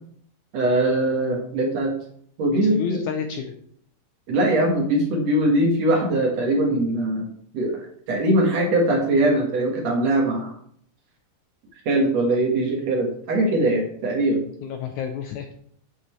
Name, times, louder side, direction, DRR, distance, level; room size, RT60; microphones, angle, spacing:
voice 1, 0.5-1.9 2.4-3.0 4.3-7.3 7.5-10.5 11.9-14.4, right 1 dB, 60° right, 1 dB, 2.2 m, -21 dB
voice 2, 2.5-3.6 14.6-15.6, left 8 dB, 80° left, 5 dB, 1.8 m, -30 dB
8.6 x 8.0 x 3.1 m, 0.64 s
omnidirectional pair, 4.0 m